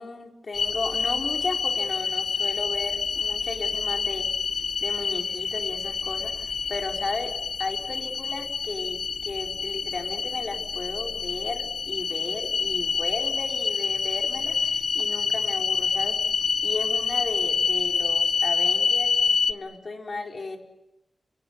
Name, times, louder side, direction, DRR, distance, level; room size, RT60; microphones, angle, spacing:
voice 1, 0.0-4.3 4.8-7.3 7.6-16.2 16.6-19.1 19.5-20.6, left 3 dB, 50° left, 2 dB, 4.6 m, -35 dB
sound 1, 0.5-19.5, left 5 dB, 70° left, 1.0 m, -27 dB
30.0 x 26.5 x 7.1 m, 0.89 s
wide cardioid pair, 135°, 0 cm